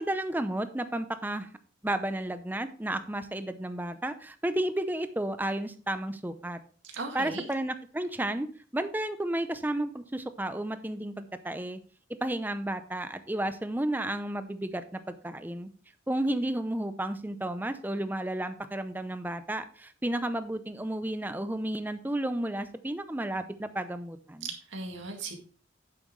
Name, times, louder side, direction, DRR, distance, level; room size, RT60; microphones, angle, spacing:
voice 1, 0.0-1.5 1.8-6.6 7.1-8.5 8.7-11.8 12.2-15.7 16.1-24.5, right 1 dB, 10° right, 10 dB, 0.6 m, -32 dB
voice 2, 6.8-7.5 24.4-25.4, right 3 dB, 80° right, 2 dB, 2.0 m, -37 dB
9.0 x 7.4 x 3.2 m, 0.41 s
head